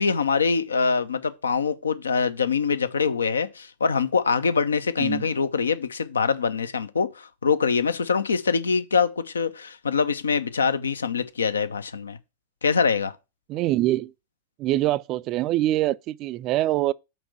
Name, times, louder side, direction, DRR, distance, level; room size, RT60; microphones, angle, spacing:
voice 1, 0.0-12.2 12.6-13.1, left 5 dB, 70° left, 0.6 m, -24 dB
voice 2, 13.5-14.1 14.6-16.9, right 15 dB, 35° right, 0.4 m, -24 dB
6.1 x 5.2 x 6.1 m
figure-of-eight pair, 90°, 0 cm